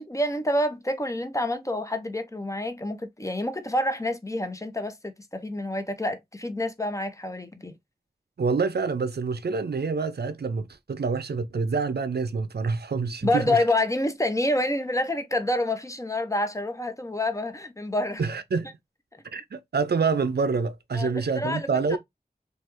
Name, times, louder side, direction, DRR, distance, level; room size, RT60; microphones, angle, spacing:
voice 1, 0.0-7.7 13.2-18.2 20.9-22.0, left 1 dB, 20° left, 0.6 m, -28 dB
voice 2, 8.4-13.6 18.2-18.7 19.3-22.0, right 4 dB, 70° right, 0.4 m, -27 dB
3.2 x 2.3 x 2.9 m
wide cardioid pair, 50°, 17 cm